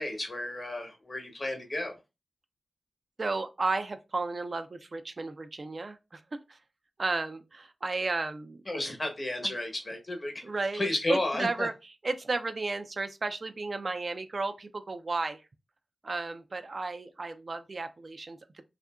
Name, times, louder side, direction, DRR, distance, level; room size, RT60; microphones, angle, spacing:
voice 1, 0.0-2.0 8.7-10.4 10.7-11.7, left 1 dB, 45° left, 0.9 m, -32 dB
voice 2, 3.2-6.6 7.0-8.6 9.4-9.5 10.4-10.8 11.1-15.4 16.0-18.6, right 3 dB, 55° right, 0.3 m, -33 dB
2.7 x 2.4 x 2.2 m
cardioid pair, 50°, 0 cm